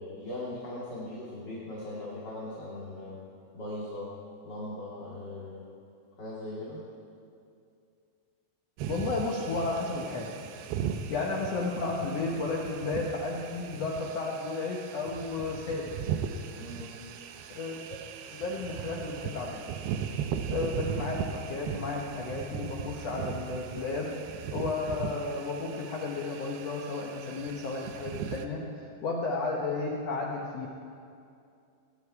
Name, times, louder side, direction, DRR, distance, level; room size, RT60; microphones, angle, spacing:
voice 1, 0.0-3.2 3.5-4.1 4.4-5.7 6.2-6.8 16.5-17.0, left 1 dB, 35° left, -7 dB, 2.0 m, -39 dB
sound 1, 8.8-28.5, right 8 dB, 90° right, 2.8 m, -38 dB
voice 2, 8.9-10.4 11.1-15.9 17.5-17.7 18.3-19.6 20.5-24.1 24.5-30.7, left 3 dB, 80° left, -2 dB, 1.4 m, -33 dB
18.0 x 10.5 x 4.7 m, 2.4 s
omnidirectional pair, 4.5 m